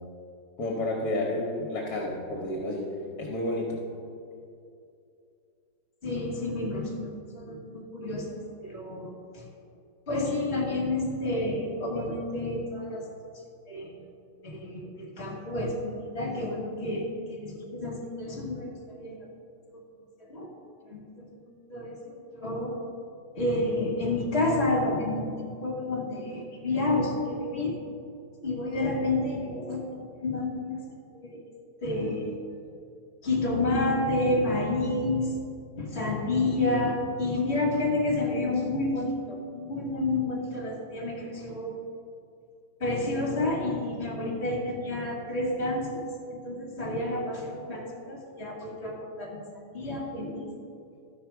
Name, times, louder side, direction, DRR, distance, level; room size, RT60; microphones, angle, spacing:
voice 1, 0.6-2.9 3.2-3.8, left 1 dB, 55° left, -1 dB, 1.4 m, -30 dB
voice 2, 6.0-8.3 8.6-9.5 10.1-13.1 13.7-14.0 14.4-19.3 19.7-19.8 20.3-20.5 20.9-21.4 21.7-22.0 22.3-22.8 23.3-27.7 28.4-30.8 31.1-31.4 31.8-32.4 33.2-35.3 35.8-41.8 42.8-46.0 46.3-49.5 49.7-50.5, left 2 dB, 35° left, -2 dB, 1.6 m, -30 dB
13.0 x 5.3 x 4.6 m, 2.5 s
omnidirectional pair, 2.1 m